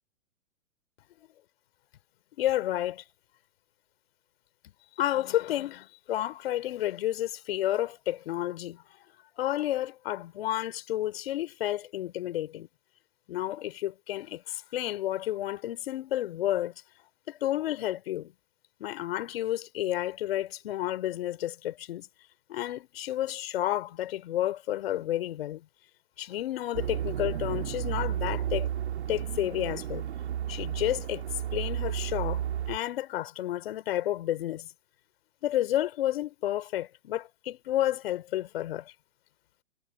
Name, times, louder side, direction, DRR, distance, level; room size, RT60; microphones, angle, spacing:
voice 1, 2.4-3.0 5.0-8.8 9.4-12.7 13.3-16.7 17.3-18.3 18.8-22.1 22.5-25.6 26.2-28.7 29.1-30.1 30.5-31.2 31.5-34.7 35.4-38.9, left 13 dB, 45° left, 3.4 m, -31 dB
sound 1, 26.7-32.8, right 10 dB, 55° right, 3.2 m, -32 dB
figure-of-eight pair, 125°, 39 cm